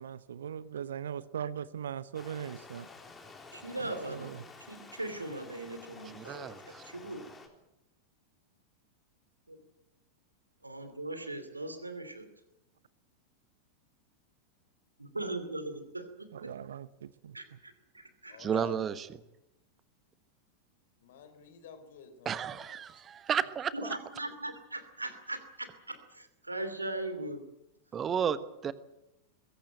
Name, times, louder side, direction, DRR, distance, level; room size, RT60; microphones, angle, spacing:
voice 1, 0.0-2.9 3.8-4.4 16.3-17.4, right 8 dB, 65° right, 19 dB, 0.7 m, -40 dB
Stream, 2.1-7.5, left 3 dB, 15° left, 3.7 m, -51 dB
voice 2, 3.5-7.2 9.5-9.6 10.6-12.3 15.0-16.3 17.3-18.4 23.7-27.4, right 2 dB, 85° right, 10 dB, 2.8 m, -39 dB
voice 3, 6.1-6.8 18.4-19.1 22.2-23.9 27.9-28.7, right 8 dB, 25° right, 15 dB, 1.2 m, -32 dB
voice 4, 18.3-18.9 21.0-23.0, left 7 dB, 55° left, 10 dB, 3.7 m, -50 dB
21.5 x 16.5 x 9.0 m, 0.88 s
figure-of-eight pair, 90°, 0 cm